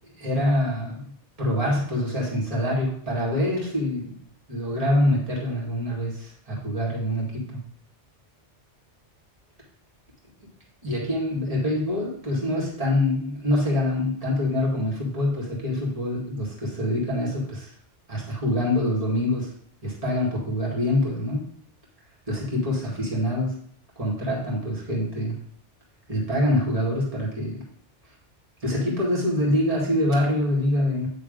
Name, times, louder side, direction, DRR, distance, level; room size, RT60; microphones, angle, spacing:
voice 1, 0.2-1.1 1.4-4.1 4.5-7.6 10.8-17.7 18.1-19.5 19.8-21.4 22.3-23.5 24.0-25.4 26.1-27.6 28.6-31.1, left 1 dB, 30° right, -4 dB, 2.0 m, -25 dB
8.9 x 3.2 x 5.1 m, 0.62 s
omnidirectional pair, 1.2 m